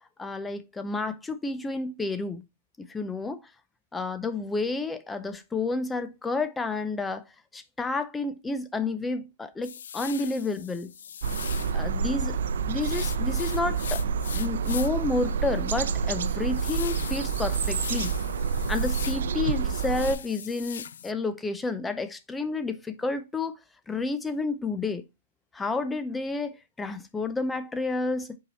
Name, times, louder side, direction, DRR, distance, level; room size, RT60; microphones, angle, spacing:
voice 1, 0.2-2.4 2.8-3.4 3.9-7.2 7.5-10.9 11.7-12.4 12.7-14.0 14.3-18.1 18.7-23.5 23.9-25.0 25.5-28.4, left 3 dB, 10° left, 0.6 m, -30 dB
sound 1, 9.6-11.8 12.8-15.1 15.5-15.6 16.1-19.2 19.5-21.1, left 8 dB, 75° left, 0.3 m, -40 dB
sound 2, 11.2-20.2, right 5 dB, 70° right, 0.6 m, -28 dB
5.3 x 4.7 x 4.2 m
hypercardioid pair, 150°, 0 cm